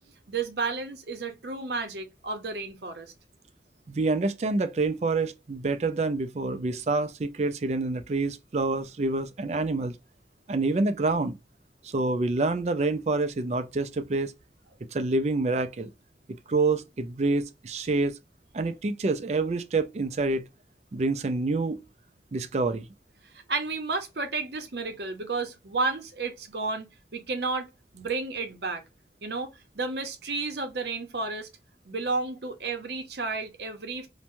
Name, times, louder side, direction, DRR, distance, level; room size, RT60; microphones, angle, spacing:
voice 1, 0.3-3.1 23.3-27.7 27.9-28.8 29.2-31.5 31.9-34.1, right 3 dB, 70° right, 0.8 m, -32 dB
voice 2, 3.9-10.0 10.5-11.3 11.8-14.3 14.9-15.9 16.5-18.2 18.5-20.4 20.9-21.8 22.3-22.9, right 3 dB, 40° right, 0.4 m, -27 dB
3.0 x 2.1 x 2.6 m
head